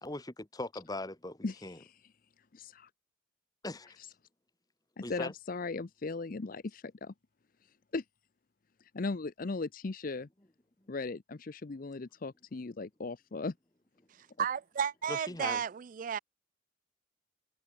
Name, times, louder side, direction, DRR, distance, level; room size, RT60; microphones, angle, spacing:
voice 1, 0.0-1.8 3.6-4.0 5.0-5.3 15.1-15.6, left 2 dB, 20° left, 1.6 m, -40 dB
voice 2, 1.4-2.0 2.5-2.9 5.0-7.1 7.9-8.0 8.9-10.3 10.9-13.5, left 3 dB, 45° left, 0.6 m, -38 dB
voice 3, 14.1-16.2, right 7 dB, 45° right, 0.3 m, -33 dB
head